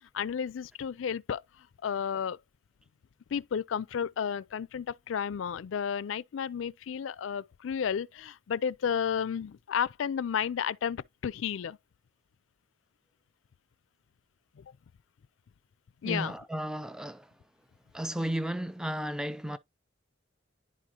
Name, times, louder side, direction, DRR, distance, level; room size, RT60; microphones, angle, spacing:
voice 1, 0.1-2.4 3.3-11.8 14.6-14.7 16.0-16.3, left 7 dB, 80° left, 0.4 m, -32 dB
voice 2, 16.0-17.3 17.9-19.6, right 1 dB, 5° right, 0.3 m, -34 dB
10.5 x 4.8 x 2.8 m
head